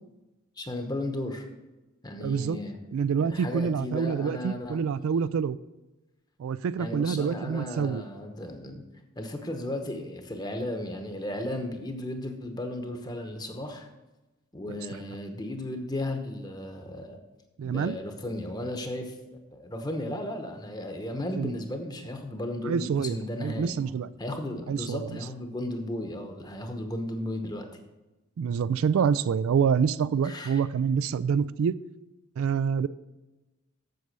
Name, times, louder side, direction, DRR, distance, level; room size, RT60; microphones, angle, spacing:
voice 1, 0.6-1.4 2.0-2.8 3.2-4.8 6.8-8.8 9.2-13.9 14.5-17.2 17.6-19.2 19.5-23.9 24.2-27.7 30.2-30.6, left 1 dB, 20° left, 5 dB, 0.9 m, -35 dB
voice 2, 2.2-2.6 2.9-5.6 6.4-8.0 14.7-14.8 17.6-18.0 21.4-21.5 22.6-24.1 24.7-25.1 28.4-31.8 32.4-32.9, right 6 dB, 70° right, 16 dB, 0.3 m, -27 dB
8.0 x 6.7 x 6.7 m, 1.1 s
head